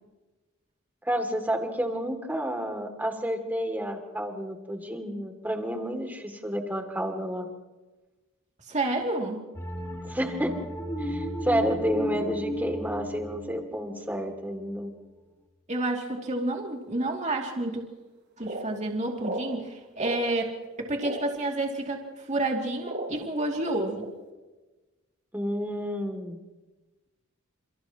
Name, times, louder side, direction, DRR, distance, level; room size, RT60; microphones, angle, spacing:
voice 1, 1.0-7.5 10.0-10.5 11.0-14.9 25.3-26.4, equal, 10° right, 4 dB, 2.8 m, -30 dB
voice 2, 8.7-9.4 15.7-17.8 18.4-24.0, right 2 dB, 35° right, 1 dB, 2.8 m, -30 dB
sound 1, 9.6-14.8, equal, 15° left, 2.6 m, -35 dB
sound 2, 17.7-17.8 18.4-18.7 19.2-19.4 20.0-20.2 21.0-21.2 22.1-22.2 22.8-23.3 23.9-24.1, right 2 dB, 55° right, 5.1 m, -33 dB
30.0 x 29.0 x 3.1 m, 1.1 s
head